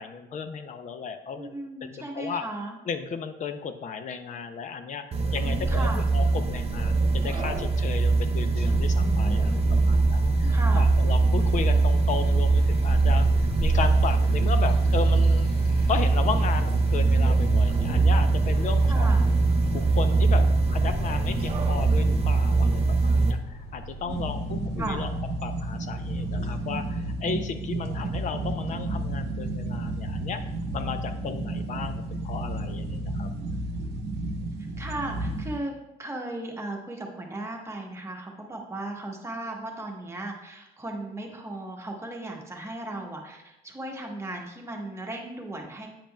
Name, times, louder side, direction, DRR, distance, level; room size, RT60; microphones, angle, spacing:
voice 1, 0.0-1.5 1.9-2.4 2.9-9.5 9.9-15.5 15.9-19.1 19.7-20.5 20.7-25.1 25.4-30.4 30.7-33.3, left 6 dB, 45° left, 8 dB, 0.5 m, -34 dB
voice 2, 1.4-2.8 5.3-6.1 8.9-10.0 10.5-10.9 18.9-19.3 24.0-25.0 34.8-45.9, right 2 dB, 15° right, 0 dB, 1.1 m, -36 dB
sound 1, 5.1-23.3, right 3 dB, 35° right, 0.6 m, -22 dB
Motorcycle, 8.5-25.0, equal, 75° left, 2.2 m, -36 dB
sound 2, 24.1-35.6, right 2 dB, 80° right, 0.8 m, -32 dB
8.7 x 5.2 x 2.2 m, 0.93 s
cardioid pair, 110°, 17 cm